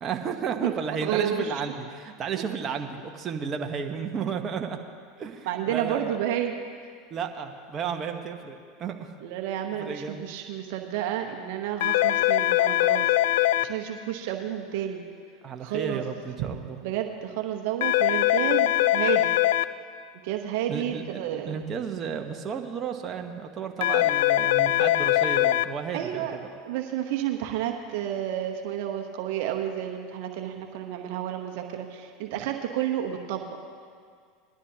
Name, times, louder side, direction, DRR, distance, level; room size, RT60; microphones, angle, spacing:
voice 1, 0.0-4.8 5.2-6.2 7.1-9.1 9.8-10.3 15.4-16.8 20.7-26.6, right 6 dB, 35° right, 4 dB, 1.2 m, -33 dB
voice 2, 1.0-1.6 5.4-6.6 9.2-15.0 15.6-16.0 16.4-16.6 16.8-19.3 20.2-21.6 25.9-26.4 26.6-33.5, right 11 dB, 65° right, 3 dB, 1.0 m, -31 dB
sound 1, 11.8-13.6 17.8-19.6 23.8-25.6, left 15 dB, 75° left, 0.3 m, -22 dB
20.5 x 12.5 x 2.9 m, 2.2 s
hypercardioid pair, 95°, 0 cm